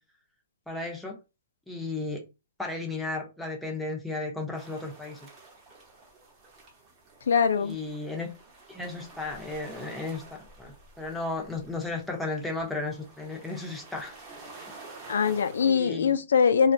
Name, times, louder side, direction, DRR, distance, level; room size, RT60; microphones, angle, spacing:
voice 1, 0.7-1.2 1.7-2.2 2.6-5.3 7.6-8.3 8.7-14.2 15.6-16.2, left 2 dB, 5° left, 0.5 m, -34 dB
sound 1, 4.5-15.7, right 3 dB, 25° right, 0.8 m, -50 dB
voice 2, 7.3-7.8 15.1-16.7, left 6 dB, 80° left, 0.4 m, -22 dB
2.3 x 2.1 x 2.6 m
hypercardioid pair, 150°, 0 cm